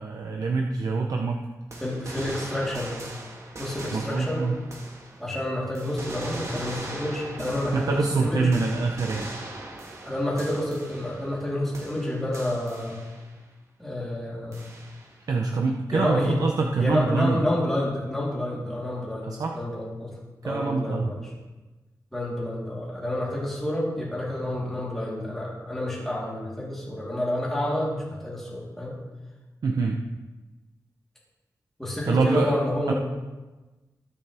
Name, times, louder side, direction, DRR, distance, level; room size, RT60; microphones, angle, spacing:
voice 1, 0.0-1.4 3.9-4.6 7.7-9.3 15.3-17.4 19.3-19.6 20.4-21.1 29.6-30.0 32.1-32.5 32.9-33.0, right 4 dB, 65° right, 2 dB, 0.7 m, -25 dB
sound 1, 1.7-5.4 5.7-11.5 11.7-13.4 14.5-15.2, right 2 dB, 45° right, 1.6 m, -40 dB
voice 2, 1.8-2.9 3.6-4.4 5.2-8.5 10.0-13.0 13.8-14.7 15.9-16.4 16.8-20.1 20.4-21.2 22.1-29.0 31.8-32.9, left 1 dB, 5° left, -7 dB, 3.6 m, -29 dB
20.5 x 6.9 x 3.5 m, 1.2 s
wide cardioid pair, 170°, 7 cm